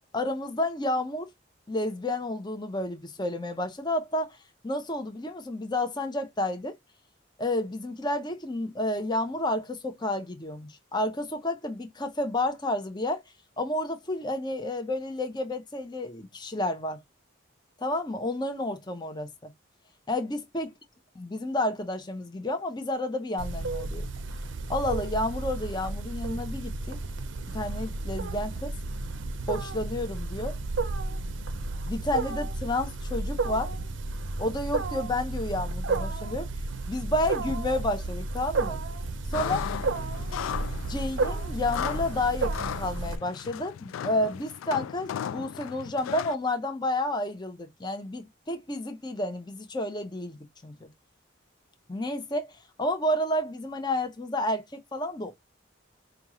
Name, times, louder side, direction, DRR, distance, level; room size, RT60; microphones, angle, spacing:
voice 1, 0.1-1.3 1.7-4.4 4.6-6.7 7.4-13.2 13.6-17.0 17.8-19.5 20.1-20.7 21.2-24.0 24.7-27.0 27.5-28.7 29.5-30.5 31.9-33.7 34.4-36.5 36.9-38.8 39.3-39.7 40.9-50.9 51.9-52.5 52.8-55.3, left 1 dB, 20° left, 0.8 m, -30 dB
Wild animals, 23.4-43.2, right 3 dB, 70° right, 0.6 m, -32 dB
sound 1, 39.3-46.4, left 9 dB, 90° left, 0.3 m, -36 dB
5.2 x 2.4 x 3.0 m
head